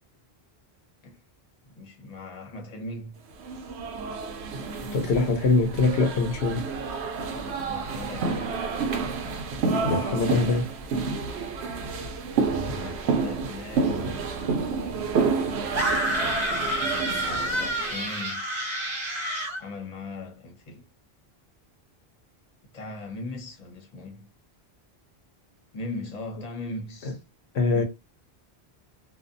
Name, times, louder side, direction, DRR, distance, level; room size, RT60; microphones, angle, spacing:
voice 1, 1.6-3.2 7.6-8.6 12.7-14.2 16.8-18.5 19.6-20.9 22.7-24.3 25.7-27.2 27.7-27.8, left 2 dB, 40° left, 0.8 m, -39 dB
sound 1, 3.4-18.1, right 4 dB, 90° right, 0.9 m, -29 dB
voice 2, 4.9-6.6 9.8-10.7 27.0-27.1 27.5-27.8, left 3 dB, 80° left, 0.9 m, -23 dB
sound 2, 15.7-19.6, right 1 dB, 45° right, 0.8 m, -28 dB
2.5 x 2.2 x 2.5 m
omnidirectional pair, 1.1 m